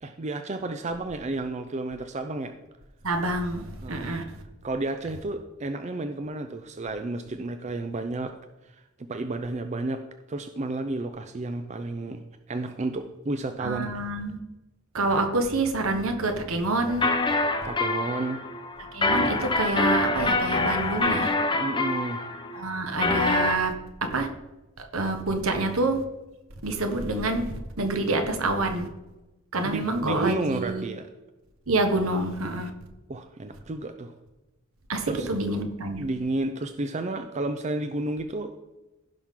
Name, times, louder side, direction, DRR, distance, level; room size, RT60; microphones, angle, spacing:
voice 1, 0.0-2.5 3.8-4.2 4.6-8.3 8.6-12.2 12.5-13.9 17.6-18.4 21.5-22.2 29.6-31.1 33.1-34.1 35.1-35.3 36.0-38.5, right 2 dB, 30° right, 8 dB, 0.5 m, -31 dB
voice 2, 3.0-4.2 13.6-14.4 14.9-17.1 18.9-21.3 22.5-23.7 24.1-24.3 24.8-26.0 26.6-28.9 29.5-30.8 31.7-32.7 34.9-36.1, right 2 dB, 70° right, 5 dB, 1.3 m, -27 dB
Menu Background Music, 16.9-23.5, left 2 dB, 20° left, 0.8 m, -26 dB
15.5 x 5.8 x 3.7 m, 1.0 s
head